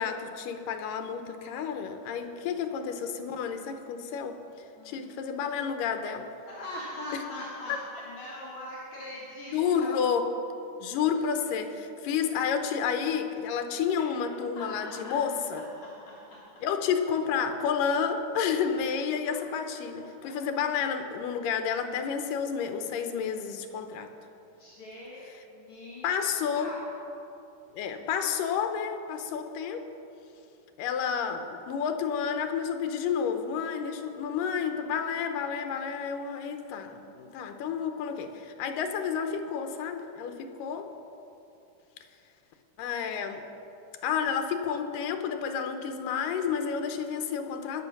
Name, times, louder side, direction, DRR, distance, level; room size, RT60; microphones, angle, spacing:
voice 1, 0.0-4.4 4.9-6.3 7.7-7.8 9.5-10.3 10.8-15.6 16.6-24.1 26.0-26.7 27.7-29.9 30.8-40.9 42.8-43.5 44.0-47.8, left 7 dB, 85° left, 7 dB, 2.5 m, -30 dB
voice 2, 2.4-2.7 4.8-5.0 6.4-10.0 11.1-11.3 14.6-15.2 15.8-16.4 19.3-19.4 20.2-20.4 24.5-26.1 26.5-26.8, left 1 dB, 60° left, -6 dB, 2.9 m, -42 dB
20.5 x 7.1 x 5.9 m, 2.8 s
omnidirectional pair, 3.8 m